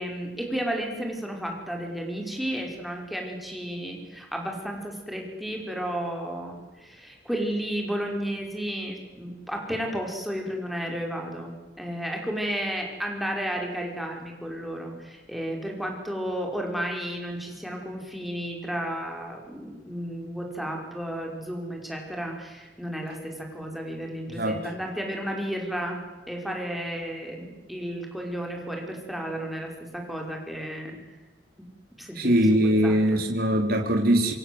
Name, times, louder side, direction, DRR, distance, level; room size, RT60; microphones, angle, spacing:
voice 1, 0.0-26.0 26.3-31.0 31.6-31.7 32.0-32.3 32.8-33.2, equal, ahead, 1 dB, 5.6 m, -33 dB
voice 2, 32.1-34.3, equal, 60° right, 2 dB, 3.9 m, -22 dB
27.0 x 26.5 x 8.1 m, 1.2 s
head